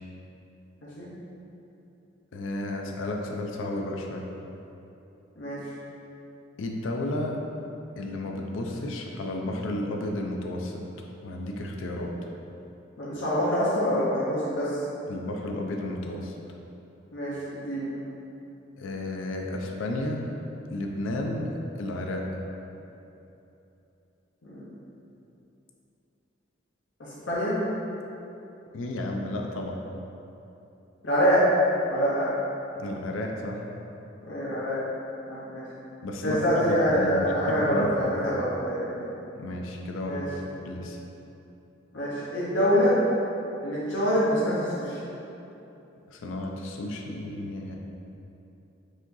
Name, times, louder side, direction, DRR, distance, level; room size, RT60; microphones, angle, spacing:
voice 1, 2.3-4.3 6.6-7.4 8.0-10.8 11.2-12.1 15.1-16.3 18.8-20.4 20.7-22.3 28.7-29.8 32.7-33.7 36.0-38.3 39.3-40.3 40.6-41.0 46.1-47.8, left 1 dB, 90° left, 1 dB, 0.4 m, -32 dB
voice 2, 13.0-14.8 17.1-17.9 24.4-24.6 27.0-27.6 31.0-31.4 31.9-32.3 34.2-34.8 35.3-35.6 36.2-39.1 40.0-40.3 41.9-43.0 43.6-45.0, equal, 70° left, -8 dB, 0.9 m, -25 dB
4.9 x 3.9 x 2.7 m, 2.9 s
head